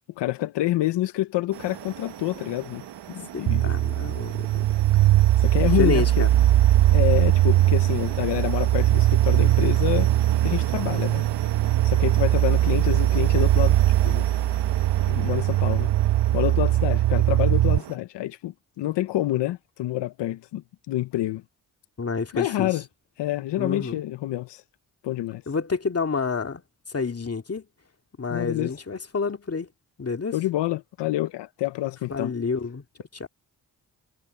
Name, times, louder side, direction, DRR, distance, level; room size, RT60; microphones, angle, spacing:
voice 1, 0.2-2.8 3.1-3.7 5.4-6.2 6.9-10.1 10.4-11.2 11.8-14.3 15.1-15.9 16.3-21.4 22.3-22.8 23.2-24.6 25.0-25.4 28.3-28.7 30.3-32.3, left 15 dB, 90° left, 0.8 m, -27 dB
sound 1, 1.5-18.0, right 11 dB, 80° right, 1.2 m, -37 dB
voice 2, 3.3-4.7 5.6-6.3 22.0-22.8 23.6-24.0 25.5-26.6 26.9-27.6 28.2-29.7 30.0-30.3 32.1-32.8 33.1-33.3, left 4 dB, 35° left, 2.3 m, -29 dB
sound 2, 3.5-17.8, right 14 dB, 60° right, 0.7 m, -20 dB
supercardioid pair, 50°, 41 cm